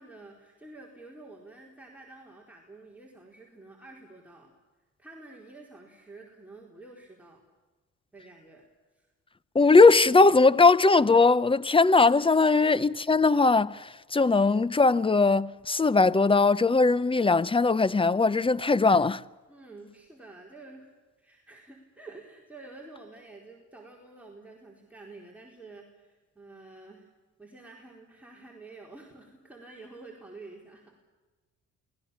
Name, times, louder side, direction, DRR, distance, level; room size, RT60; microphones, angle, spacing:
voice 1, 0.0-4.5 5.0-7.4 8.1-8.6 8.9-9.1 19.5-20.9 21.2-27.1 27.4-31.0, right 3 dB, 5° right, 4.5 m, -49 dB
voice 2, 9.5-19.2, left 3 dB, 20° left, 0.7 m, -20 dB
28.5 x 20.0 x 7.2 m
cardioid pair, 90°, 30 cm